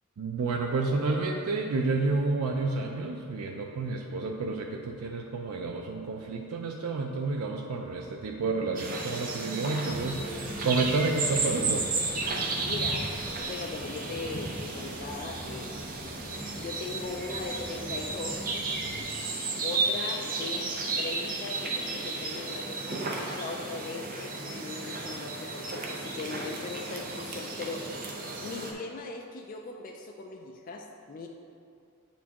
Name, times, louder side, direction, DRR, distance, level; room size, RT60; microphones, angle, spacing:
voice 1, 0.2-11.9, right 3 dB, 90° right, 1 dB, 0.4 m, -30 dB
sound 1, 8.4-11.5 11.8-12.8 13.4-13.5, left 1 dB, 65° left, 1.0 m, -46 dB
sound 2, 8.8-28.7, right 3 dB, 40° right, 0.6 m, -33 dB
sound 3, 9.9-19.1, equal, 5° right, 0.9 m, -45 dB
voice 2, 12.7-15.9 16.6-18.6 19.6-27.9 28.4-31.3, left 3 dB, 40° left, 1 dB, 0.3 m, -39 dB
8.1 x 4.3 x 2.9 m, 2.4 s
head